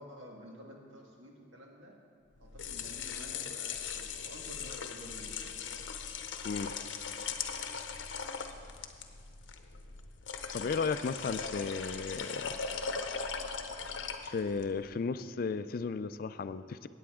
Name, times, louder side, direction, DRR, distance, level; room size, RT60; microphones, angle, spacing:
voice 1, 0.0-2.0 2.4-5.4, equal, 90° right, 0 dB, 1.7 m, -50 dB
sound 1, 2.4-14.7, left 6 dB, 75° left, 0.7 m, -39 dB
voice 2, 10.5-12.5 14.2-16.9, left 4 dB, 50° left, 13 dB, 0.3 m, -34 dB
16.5 x 8.6 x 3.6 m, 2.3 s
head